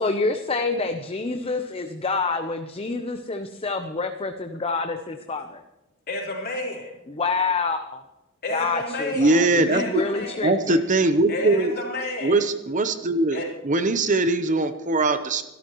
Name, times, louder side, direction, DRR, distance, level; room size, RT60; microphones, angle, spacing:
voice 1, 0.0-5.6 7.1-8.0 8.5-10.8, left 3 dB, 30° left, 6 dB, 0.7 m, -27 dB
voice 2, 6.1-6.9 8.4-10.5 11.3-12.4 13.3-13.5, left 2 dB, 50° left, -1 dB, 3.9 m, -31 dB
voice 3, 9.2-10.0 10.4-11.8 12.2-15.5, right 2 dB, 40° right, 10 dB, 0.8 m, -21 dB
25.5 x 12.5 x 3.1 m, 1.0 s
head